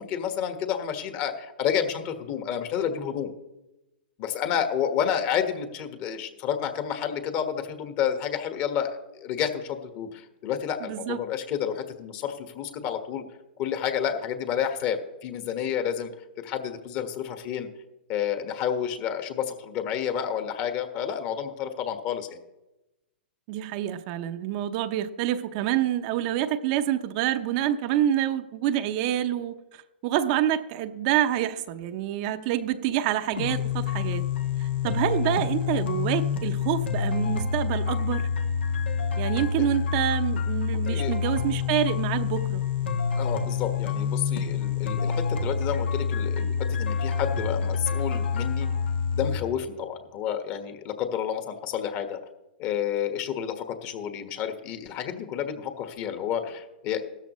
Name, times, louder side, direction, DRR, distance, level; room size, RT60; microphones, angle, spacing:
voice 1, 0.0-3.3 4.2-13.2 13.6-16.1 16.4-17.7 18.1-22.4 40.9-41.1 43.2-48.7 49.1-52.2 52.6-57.0, left 8 dB, 40° left, 7 dB, 1.5 m, -30 dB
voice 2, 10.8-11.2 23.5-34.2 34.8-38.3 39.2-42.6, right 11 dB, 45° right, 8 dB, 0.8 m, -27 dB
sound 1, 33.4-49.4, left 6 dB, 80° left, 1.4 m, -27 dB
16.5 x 13.0 x 3.1 m, 0.98 s
hypercardioid pair, 125°, 6 cm